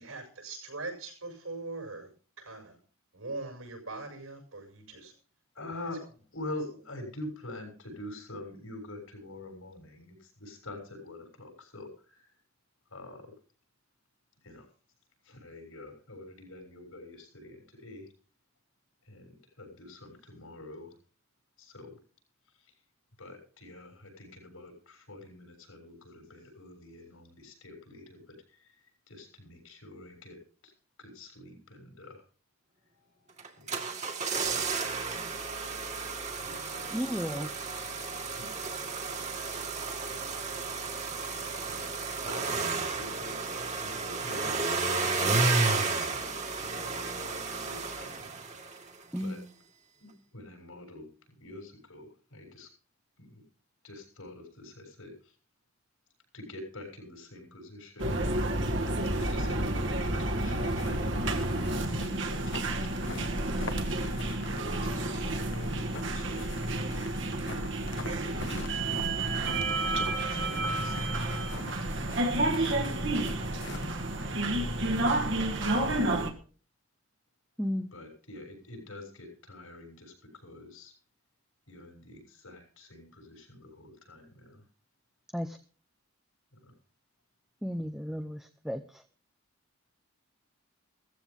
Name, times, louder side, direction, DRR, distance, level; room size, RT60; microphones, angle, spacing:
voice 1, 0.0-2.1 2.4-2.8 3.1-5.1, right 3 dB, 80° right, 3 dB, 6.8 m, -41 dB
voice 2, 5.5-6.0 6.3-12.4 12.9-13.3 14.4-14.7 15.2-18.1 19.0-21.0 21.6-22.0 22.5-22.7 23.2-30.4 30.6-30.7 31.0-32.2 33.6-33.9 36.4-38.5 39.1-39.8 41.7-42.0 42.2-46.3 46.6-48.8 49.2-49.4 50.0-51.1 51.4-52.7 53.2-53.4 53.8-55.4 56.3-58.2 59.1-61.3 62.1-66.5 67.2-69.2 70.2-71.5 72.5-73.1 74.1-74.6 76.0-76.3 77.9-80.9 81.7-84.7 86.5-86.8, left 2 dB, 80° left, 3 dB, 7.0 m, -47 dB
sound 1, 33.4-48.9 49.2-49.3, right 4 dB, 30° right, 1.9 m, -32 dB
voice 3, 36.9-37.5 49.1-49.4 77.6-77.9 85.3-85.6 87.6-88.4 88.6-88.8, equal, ahead, 6 dB, 0.6 m, -33 dB
sound 2, 58.0-76.3, right 2 dB, 55° right, 1.7 m, -30 dB
sound 3, 60.4-73.9, left 3 dB, 55° left, 1.2 m, -45 dB
17.0 x 14.5 x 3.7 m, 0.41 s
head